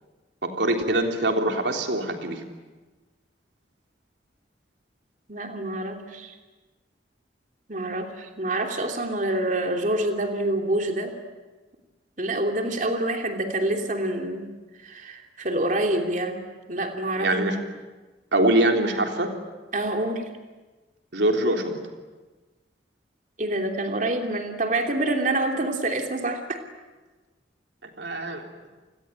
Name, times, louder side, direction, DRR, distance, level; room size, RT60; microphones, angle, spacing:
voice 1, 0.4-2.4 17.2-17.6 18.3-19.3 21.1-21.8 28.0-28.4, right 1 dB, 75° right, 3 dB, 3.5 m, -23 dB
voice 2, 5.3-6.4 7.7-11.2 12.2-14.5 14.8-17.4 19.7-20.3 23.4-26.6, right 1 dB, 45° right, 4 dB, 3.1 m, -27 dB
29.5 x 21.0 x 9.1 m, 1.3 s
head